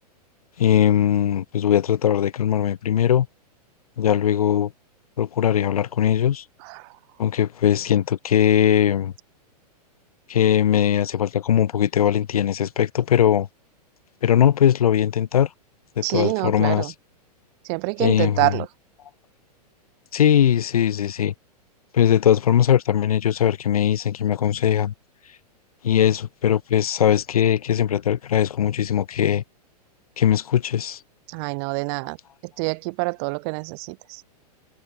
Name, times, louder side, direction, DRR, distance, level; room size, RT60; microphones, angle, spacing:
voice 1, 0.6-3.3 4.0-4.7 5.2-6.4 7.2-9.1 10.3-13.5 14.2-15.5 16.0-16.9 18.0-18.6 20.1-21.3 21.9-24.9 25.8-29.4 30.2-31.0, left 9 dB, 60° left, 5.5 m, -20 dB
voice 2, 16.0-16.9 17.6-18.7 31.3-32.2 32.6-34.2, right 36 dB, 40° right, 4.4 m, -26 dB
figure-of-eight pair, 105°, 21 cm